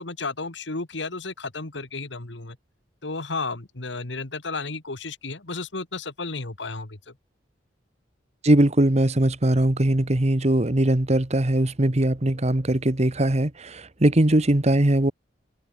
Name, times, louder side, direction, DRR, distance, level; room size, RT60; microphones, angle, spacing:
voice 1, 0.0-2.6 3.0-7.2, left 3 dB, 75° left, 2.1 m, -33 dB
voice 2, 8.4-15.1, right 1 dB, 35° right, 1.3 m, -20 dB
open air
head